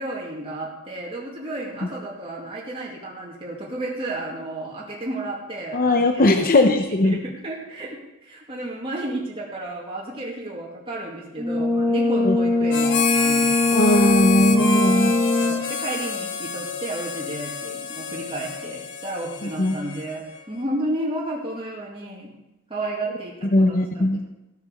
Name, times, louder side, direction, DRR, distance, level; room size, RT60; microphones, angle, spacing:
voice 1, 0.0-6.5 6.9-13.6 14.1-14.7 15.4-22.3 22.7-24.2, right 1 dB, 25° right, -4 dB, 2.2 m, -32 dB
voice 2, 5.7-7.2 12.2-12.4 13.7-15.1 19.6-19.7 23.5-24.2, left 1 dB, 40° left, 5 dB, 0.8 m, -19 dB
Brass instrument, 11.4-15.7, left 2 dB, 10° right, 1.5 m, -21 dB
Harmonica, 12.7-20.4, left 5 dB, 60° left, 1.4 m, -28 dB
15.0 x 7.5 x 6.5 m, 0.96 s
head